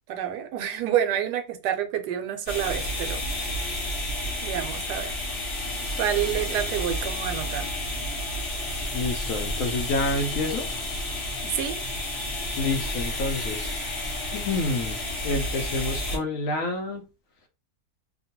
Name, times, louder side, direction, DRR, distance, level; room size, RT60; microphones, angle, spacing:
voice 1, 0.1-3.2 4.4-5.1 6.0-7.7 11.4-11.8, right 10 dB, 85° right, 1.2 m, -28 dB
sound 1, 2.5-16.2, left 1 dB, 45° left, 1.0 m, -31 dB
voice 2, 8.9-10.7 12.6-13.8 14.3-17.1, left 2 dB, 65° left, 0.9 m, -28 dB
2.9 x 2.2 x 2.8 m
omnidirectional pair, 1.8 m